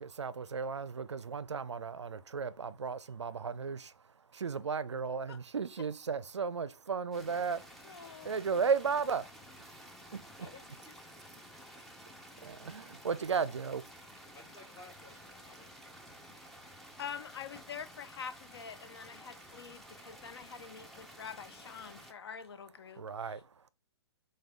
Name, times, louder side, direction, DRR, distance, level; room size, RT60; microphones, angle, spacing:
voice 1, 0.0-10.5 11.4-14.4 15.4-17.0 19.2-21.2 21.8-22.3 22.9-23.7, right 5 dB, 85° right, 0.4 m, -37 dB
sound 1, 7.1-22.1, equal, ahead, 0.5 m, -53 dB
voice 2, 7.9-8.3 17.0-23.0, left 7 dB, 65° left, 0.4 m, -45 dB
voice 3, 14.3-15.7, left 2 dB, 20° left, 1.1 m, -54 dB
6.2 x 2.3 x 3.4 m
figure-of-eight pair, 125°, 14 cm